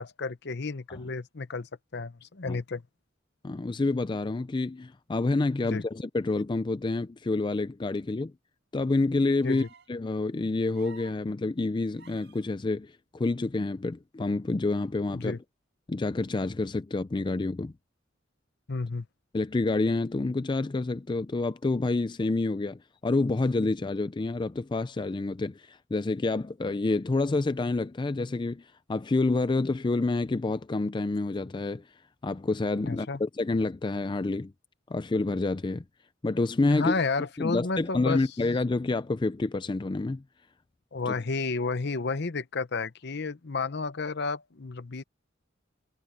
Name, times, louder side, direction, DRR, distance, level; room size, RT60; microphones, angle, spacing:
voice 1, 0.0-2.8 5.6-5.8 9.4-9.7 15.1-15.4 18.7-19.1 32.8-33.2 36.7-38.2 40.9-45.0, left 4 dB, 60° left, 0.9 m, -31 dB
voice 2, 3.4-8.3 8.7-9.6 9.9-15.4 15.9-17.7 19.3-31.8 32.2-34.5 34.9-35.8 36.2-36.9 37.4-40.2 41.1-41.2, left 3 dB, 25° left, 0.4 m, -28 dB
sound 1, 9.4-9.9 10.7-11.2 12.0-12.5 13.9-14.0, right 5 dB, 65° right, 5.7 m, -52 dB
head